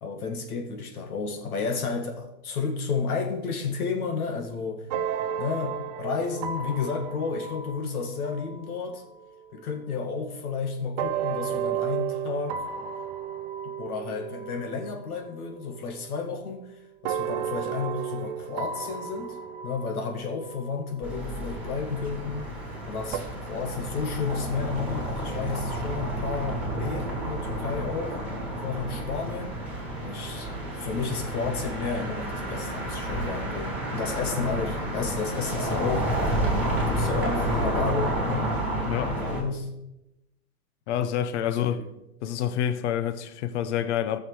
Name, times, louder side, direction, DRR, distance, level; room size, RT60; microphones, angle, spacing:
voice 1, 0.0-4.9 5.4-9.0 9.5-12.7 13.6-19.4 19.6-28.2 28.6-29.6 30.0-36.1 36.9-38.5 39.1-39.7 41.5-41.9, left 5 dB, 75° left, 2.0 m, -32 dB
sound 1, 4.9-9.7 11.0-15.3 15.6-16.6 17.0-22.0 23.1-23.2, right 8 dB, 30° right, 0.6 m, -34 dB
sound 2, 21.0-39.4, right 1 dB, 5° right, 2.9 m, -30 dB
voice 2, 40.9-41.8 42.2-44.2, left 10 dB, 50° left, 0.8 m, -27 dB
15.0 x 6.7 x 4.7 m
hypercardioid pair, 155°, 45 cm